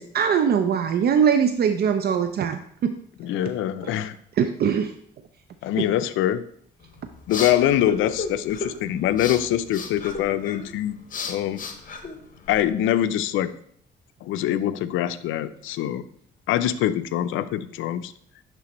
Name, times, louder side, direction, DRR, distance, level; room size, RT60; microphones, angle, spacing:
voice 1, 0.0-2.9 3.8-3.9 4.4-4.9 5.8-5.9, right 7 dB, 55° right, 8 dB, 0.4 m, -22 dB
voice 2, 3.2-4.2 5.6-6.4 7.3-11.0 11.3-11.6 12.5-13.5 14.2-16.0 16.5-18.1, left 12 dB, 85° left, 13 dB, 0.4 m, -24 dB
sound 1, 6.8-12.7, left 4 dB, 45° left, 0.9 m, -35 dB
10.0 x 3.4 x 2.9 m, 0.64 s
cardioid pair, 90°, 20 cm